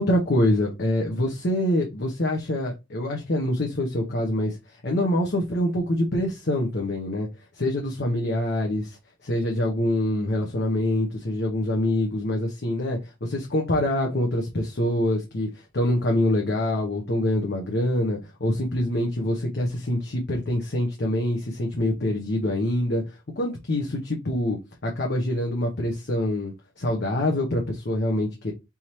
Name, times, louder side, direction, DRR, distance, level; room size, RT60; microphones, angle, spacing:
voice 1, 0.0-4.6 4.8-7.3 7.6-9.0 9.2-13.0 13.3-15.5 15.7-23.0 23.4-28.5, left 1 dB, 55° left, 0.9 m, -25 dB
3.6 x 3.0 x 4.2 m
head